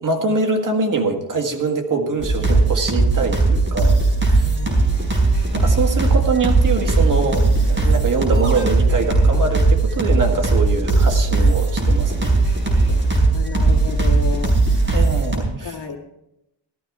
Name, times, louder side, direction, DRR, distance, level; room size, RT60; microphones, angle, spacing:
voice 1, 0.0-4.5 5.5-12.4 14.9-15.8, right 4 dB, 45° right, 4 dB, 1.7 m, -23 dB
sound 1, 2.2-15.4, right 3 dB, 25° right, 4.5 m, -18 dB
voice 2, 4.4-4.9 13.0-14.5 15.6-16.0, left 5 dB, 65° left, 1 dB, 2.3 m, -31 dB
15.0 x 13.5 x 3.6 m, 0.85 s
cardioid pair, 125°, 45 cm